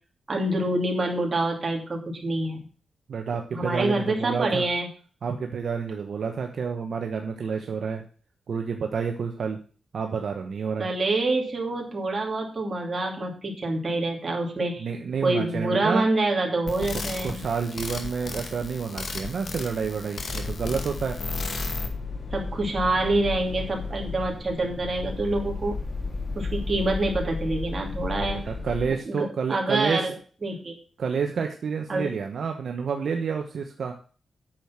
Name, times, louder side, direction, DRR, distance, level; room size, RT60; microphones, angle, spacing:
voice 1, 0.3-2.6 3.5-4.9 10.8-14.9 15.2-17.4 22.3-25.7 26.3-28.4 28.8-30.2 30.4-30.7 31.9-32.1, right 2 dB, 35° right, 0 dB, 2.8 m, -26 dB
voice 2, 3.1-4.7 5.2-8.0 8.5-9.6 9.9-10.9 14.8-16.0 17.2-21.2 28.2-30.0 31.0-33.9, right 6 dB, 70° right, 4 dB, 1.0 m, -29 dB
sound 1, 16.7-21.9, left 4 dB, 60° left, 1.9 m, -34 dB
sound 2, 20.2-28.9, left 3 dB, 40° left, 3.0 m, -33 dB
9.0 x 6.7 x 5.9 m, 0.40 s
wide cardioid pair, 110°, 0 cm